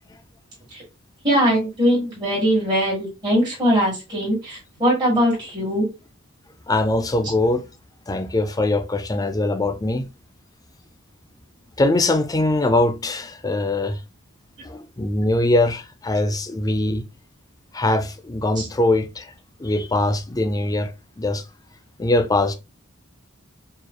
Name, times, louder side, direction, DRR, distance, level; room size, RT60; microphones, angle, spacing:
voice 1, 1.2-5.9 18.6-18.7, equal, 20° right, 1.9 m, -21 dB
voice 2, 6.7-7.6 8.1-10.0 11.8-14.0 14.6-17.0 17.7-19.3 19.6-20.9 21.2-21.4 22.0-22.6, left 2 dB, 15° left, 0.4 m, -22 dB
4.7 x 3.1 x 2.3 m
head